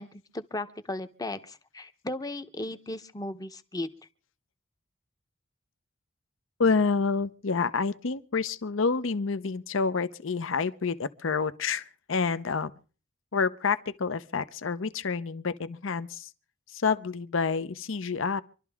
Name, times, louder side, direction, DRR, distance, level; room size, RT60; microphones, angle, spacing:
voice 1, 0.0-3.9, left 1 dB, 20° left, 0.8 m, -36 dB
voice 2, 6.6-12.7 13.3-16.3 16.7-18.4, left 5 dB, 70° left, 0.7 m, -28 dB
26.0 x 12.0 x 3.5 m
head